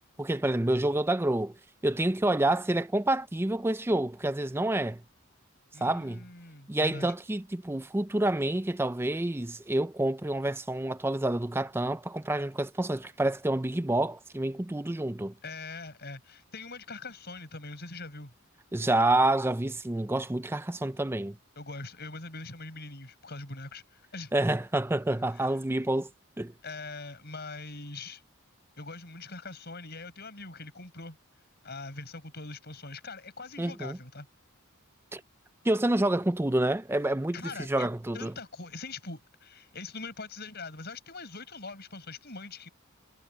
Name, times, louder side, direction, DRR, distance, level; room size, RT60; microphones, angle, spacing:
voice 1, 0.2-1.5 1.8-5.0 5.8-6.2 6.7-15.3 18.7-21.4 24.3-26.1 26.4-26.5 33.6-34.0 35.1-35.2 35.6-38.3, right 1 dB, 10° right, 0.5 m, -28 dB
voice 2, 5.7-7.1 15.4-18.3 21.6-24.3 25.3-25.5 26.6-28.2 28.8-31.2 31.6-34.3 37.3-37.9 38.1-42.7, left 3 dB, 45° left, 6.1 m, -42 dB
head